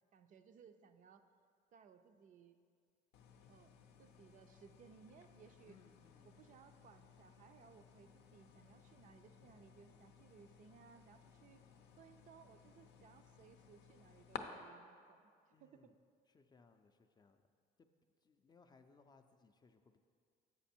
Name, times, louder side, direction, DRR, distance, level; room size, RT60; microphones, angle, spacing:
voice 1, 0.1-1.3 1.7-2.6 3.5-5.8 6.2-11.6 11.9-15.9, right 6 dB, 50° right, 9 dB, 0.4 m, -63 dB
sound 1, 3.1-14.4, left 9 dB, 80° left, 0.5 m, -58 dB
voice 2, 5.6-6.3 15.5-15.9 16.3-17.4 17.8-17.9 18.2-20.0, left 4 dB, 25° left, 7 dB, 0.4 m, -67 dB
8.1 x 5.2 x 4.3 m, 2.2 s
cardioid pair, 110°, 17 cm